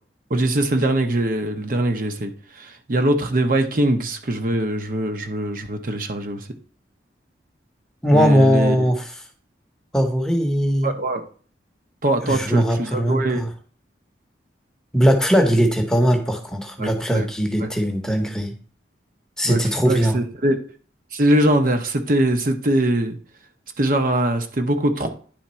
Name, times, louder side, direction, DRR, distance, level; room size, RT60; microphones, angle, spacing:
voice 1, 0.3-6.5 8.1-8.9 10.8-11.2 12.0-13.4 16.8-17.3 17.6-17.7 19.4-19.6 19.8-20.6 21.1-23.2 23.8-25.1, right 1 dB, 50° right, 6 dB, 0.8 m, -22 dB
voice 2, 8.0-9.1 9.9-10.9 12.2-13.5 14.9-18.5 19.4-20.2, equal, 5° left, 3 dB, 0.8 m, -19 dB
10.0 x 3.5 x 4.3 m, 0.42 s
head